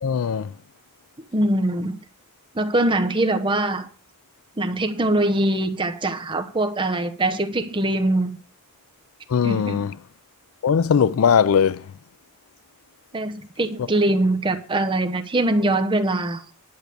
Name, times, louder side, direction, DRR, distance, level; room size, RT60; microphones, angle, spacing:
voice 1, 0.0-0.5 9.3-9.9 10.6-11.8, left 7 dB, 75° left, 0.4 m, -19 dB
voice 2, 1.3-2.0 2.5-3.9 4.6-8.3 9.4-9.8 13.1-16.4, right 1 dB, 25° right, 1.0 m, -22 dB
10.5 x 6.1 x 6.7 m
head